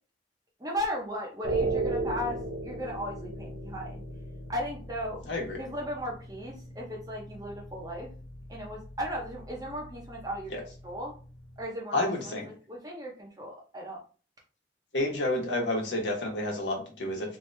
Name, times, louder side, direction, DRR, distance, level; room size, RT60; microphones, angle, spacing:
voice 1, 0.6-2.4 2.6-4.0 4.5-5.2 5.5-8.1 8.5-11.1 11.6-14.0, equal, 20° right, -1 dB, 0.6 m, -36 dB
sound 1, 1.4-11.6, right 2 dB, 90° right, 0.7 m, -37 dB
voice 2, 11.9-12.5 14.9-17.4, left 1 dB, 85° left, 0 dB, 1.1 m, -30 dB
3.0 x 2.6 x 3.2 m, 0.38 s
head